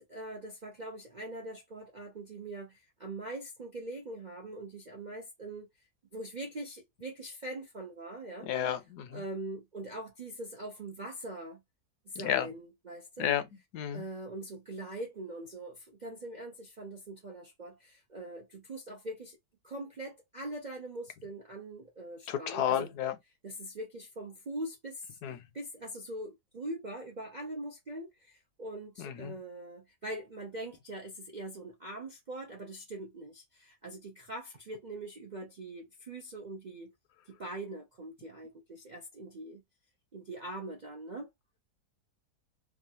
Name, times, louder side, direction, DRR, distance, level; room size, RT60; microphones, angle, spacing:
voice 1, 0.0-5.7 6.1-8.5 9.1-11.6 12.1-13.4 13.9-19.4 19.6-22.9 23.4-36.9 37.3-39.6 40.1-41.3, right 1 dB, 50° right, 0.5 m, -42 dB
voice 2, 8.4-9.2 12.2-12.5 13.2-13.4 13.7-14.0 22.3-23.2 25.2-25.4 29.0-29.3, left 10 dB, 75° left, 1.2 m, -31 dB
3.1 x 2.4 x 2.8 m
omnidirectional pair, 1.8 m